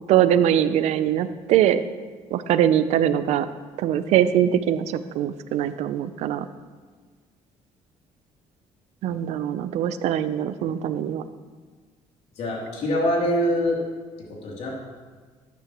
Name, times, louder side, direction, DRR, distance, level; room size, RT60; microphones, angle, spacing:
voice 1, 0.1-1.8 2.3-3.5 3.8-6.5 9.0-11.2, right 10 dB, 70° right, 12 dB, 0.6 m, -22 dB
voice 2, 12.4-13.8 14.3-14.7, equal, 65° left, -3 dB, 3.0 m, -24 dB
12.5 x 9.5 x 3.0 m, 1.5 s
cardioid pair, 110°, 12 cm